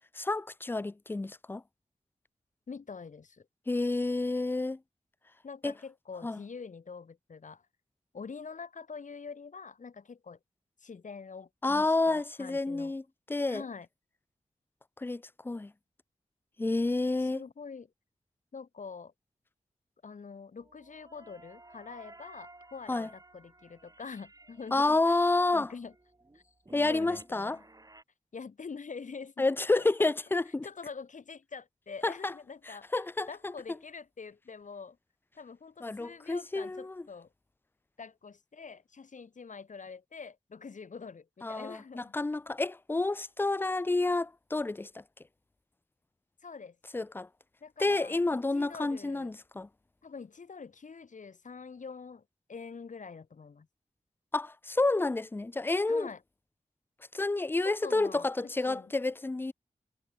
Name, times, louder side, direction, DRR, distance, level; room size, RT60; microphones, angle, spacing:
voice 1, 0.2-1.6 3.7-4.8 5.6-5.7 6.2-6.4 11.6-13.0 13.3-13.6 15.0-15.7 16.6-17.4 22.9-23.1 24.7-25.7 26.7-27.6 29.4-30.7 32.0-32.3 32.7-33.5 35.8-37.0 41.4-45.0 46.9-47.3 47.8-49.7 54.3-56.1 57.1-59.5, left 2 dB, 15° left, 0.4 m, -29 dB
voice 2, 2.7-3.5 5.4-7.6 8.1-10.4 10.8-12.9 13.5-13.9 17.3-17.9 18.5-19.1 20.0-25.2 25.5-25.9 26.3-26.4 26.9-27.6 28.3-29.5 29.8-30.1 30.6-32.9 33.3-35.0 35.4-37.3 38.0-42.1 46.4-46.8 47.6-48.2 48.5-49.3 50.0-52.2 52.5-53.7 55.9-56.2 57.6-58.9, left 5 dB, 70° left, 2.5 m, -45 dB
sound 1, 20.6-28.0, right 2 dB, 25° right, 5.7 m, -54 dB
wide cardioid pair, 110°, 13 cm